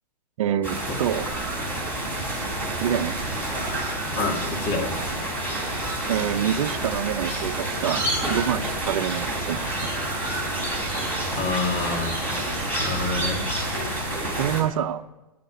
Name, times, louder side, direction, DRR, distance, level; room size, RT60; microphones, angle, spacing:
voice 1, 0.4-1.3 2.8-3.2 6.1-9.9 14.4-15.0, right 10 dB, 55° right, 9 dB, 0.8 m, -26 dB
sound 1, 0.6-14.6, right 1 dB, 10° left, 4.0 m, -28 dB
voice 2, 4.2-4.9 11.3-12.1 12.8-13.4, left 3 dB, 30° left, 2 dB, 2.8 m, -27 dB
13.0 x 9.5 x 8.6 m, 1.1 s
hypercardioid pair, 130°, 21 cm